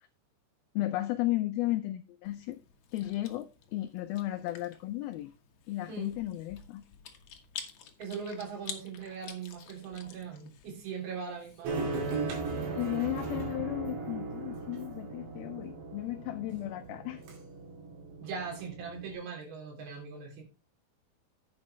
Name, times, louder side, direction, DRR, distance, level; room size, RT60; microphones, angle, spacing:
voice 1, 0.8-2.6 2.9-5.3 5.7-6.8 12.7-17.2, left 16 dB, 85° left, 2.1 m, -34 dB
Chewing mastication, 2.2-12.5, left 7 dB, 60° left, 2.1 m, -49 dB
voice 2, 8.0-12.0 18.2-20.4, right 6 dB, 65° right, 5.0 m, -40 dB
sound 1, 11.6-19.1, right 4 dB, 85° right, 4.7 m, -37 dB
10.5 x 9.0 x 3.2 m
omnidirectional pair, 5.0 m